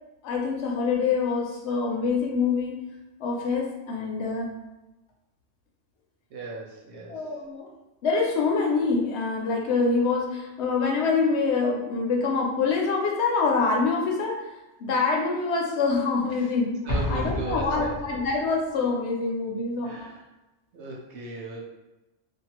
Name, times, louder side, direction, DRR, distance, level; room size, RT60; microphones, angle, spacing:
voice 1, 0.2-2.8 3.2-4.6 7.1-7.7 8.0-14.4 14.8-20.1, left 4 dB, 70° left, 0 dB, 0.8 m, -25 dB
voice 2, 6.3-7.4 16.3-16.5 16.8-18.0 19.8-20.3 20.7-21.7, right 3 dB, 75° right, -2 dB, 0.9 m, -38 dB
Explosion, 16.9-18.5, left 1 dB, 50° left, 0.5 m, -30 dB
2.6 x 2.3 x 2.9 m, 1.0 s
omnidirectional pair, 1.2 m